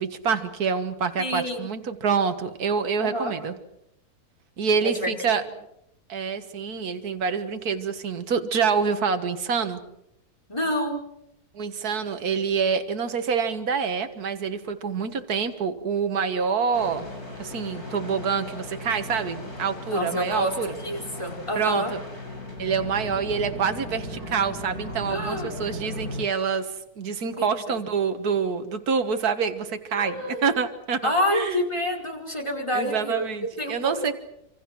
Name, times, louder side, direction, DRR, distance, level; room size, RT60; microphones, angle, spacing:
voice 1, 0.0-3.5 4.6-5.4 6.1-9.8 11.5-17.1 17.4-20.7 21.6-22.0 22.6-31.0 31.3-31.6 32.7-34.1, right 6 dB, 80° right, 8 dB, 2.0 m, -26 dB
voice 2, 1.2-1.7 3.0-3.3 4.8-5.5 10.5-11.0 19.9-21.9 25.1-25.5 27.3-27.8 29.9-30.6 31.0-33.2 33.6-34.1, left 1 dB, 20° left, 2 dB, 4.9 m, -28 dB
sound 1, 16.7-26.2, left 1 dB, 80° left, 6.5 m, -37 dB
27.0 x 26.5 x 6.2 m, 0.80 s
omnidirectional pair, 1.6 m